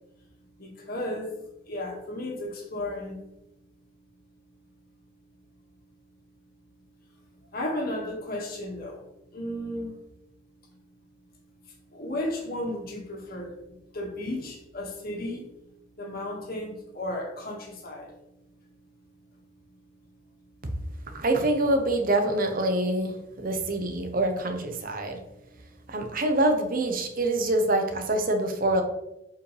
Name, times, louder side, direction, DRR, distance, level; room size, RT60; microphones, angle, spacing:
voice 1, 0.6-1.4 1.7-3.2 7.5-9.0 9.3-9.9 10.7-10.8 11.9-15.5 16.0-18.1, left 1 dB, 50° left, -1 dB, 2.0 m, -34 dB
voice 2, 21.1-25.2 25.9-28.8, right 1 dB, 45° right, 5 dB, 1.0 m, -25 dB
7.4 x 5.4 x 3.4 m, 0.89 s
head